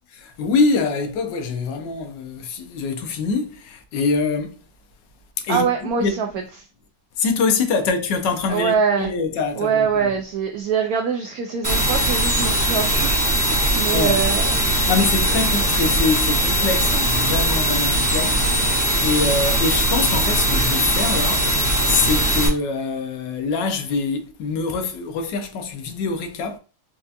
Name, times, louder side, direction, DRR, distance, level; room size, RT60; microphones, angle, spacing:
voice 1, 0.1-4.6 5.4-5.7 6.0-6.2 7.2-10.1 13.9-14.2 14.9-26.6, left 4 dB, 85° left, 1.3 m, -24 dB
voice 2, 5.5-6.3 8.5-9.1 9.6-14.6, right 6 dB, 70° right, 0.9 m, -23 dB
sound 1, 11.6-22.5, right 1 dB, 15° right, 0.9 m, -20 dB
4.4 x 2.4 x 2.6 m
omnidirectional pair, 1.9 m